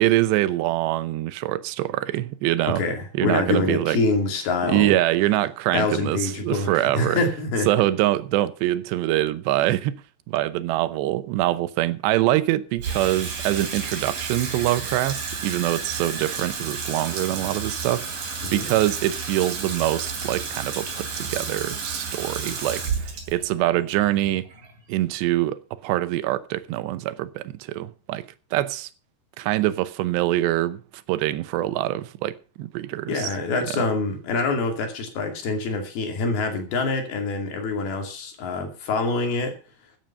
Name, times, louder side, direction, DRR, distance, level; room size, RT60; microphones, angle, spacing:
voice 1, 0.0-2.8 3.1-4.0 4.6-7.2 7.7-10.0 10.3-24.5 24.9-28.9 29.4-30.8 31.1-33.3, right 15 dB, 85° right, 3.0 m, -24 dB
voice 2, 2.7-4.9 5.7-7.7 18.4-18.7 33.1-39.6, left 3 dB, 65° left, 4.4 m, -25 dB
Water tap faucet / Sink (filling or washing), 12.8-25.2, right 5 dB, 55° right, 5.1 m, -32 dB
14.5 x 9.1 x 5.5 m
omnidirectional pair, 4.8 m